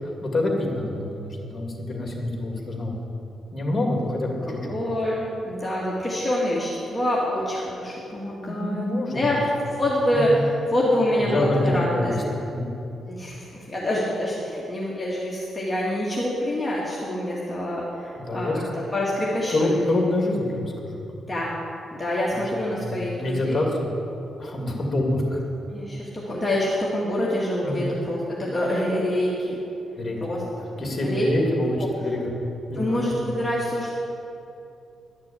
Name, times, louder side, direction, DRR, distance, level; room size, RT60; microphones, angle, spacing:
voice 1, 0.0-3.0 3.5-4.6 8.5-9.3 10.1-10.4 11.2-12.2 12.5-12.7 18.2-18.6 19.5-21.3 22.3-22.4 22.7-23.9 24.4-25.4 27.6-27.8 30.0-30.4 30.8-32.3 32.7-33.2, left 1 dB, 30° left, 0 dB, 2.3 m, -26 dB
voice 2, 4.5-8.9 9.1-9.4 9.8-12.1 13.1-18.5 18.9-20.0 21.3-21.6 22.0-23.7 25.7-29.6 30.2-30.4 31.0-31.3 32.8-34.0, left 1 dB, 10° left, -7 dB, 2.1 m, -26 dB
12.0 x 6.6 x 8.6 m, 2.7 s
cardioid pair, 120°, 0 cm